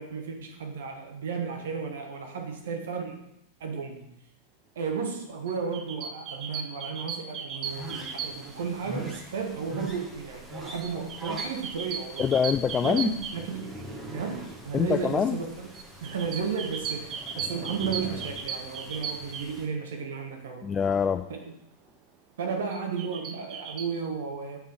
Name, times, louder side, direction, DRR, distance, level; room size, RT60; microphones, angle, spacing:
voice 1, 0.0-3.2 3.6-4.0 4.7-12.3 12.8-13.8 14.1-15.4 16.0-20.7 21.3-21.5 22.4-24.6, right 6 dB, 60° right, 2 dB, 1.6 m, -33 dB
sound 1, 5.5-8.7 10.8-13.9 15.7-19.5 22.7-23.9, right 6 dB, 35° right, 0.9 m, -37 dB
sound 2, 7.6-19.7, right 1 dB, 10° right, 1.7 m, -43 dB
voice 2, 12.2-13.1 14.7-15.4 20.6-21.2, left 7 dB, 20° left, 10 dB, 0.3 m, -24 dB
7.8 x 5.4 x 5.7 m, 0.81 s
figure-of-eight pair, 90°, 0 cm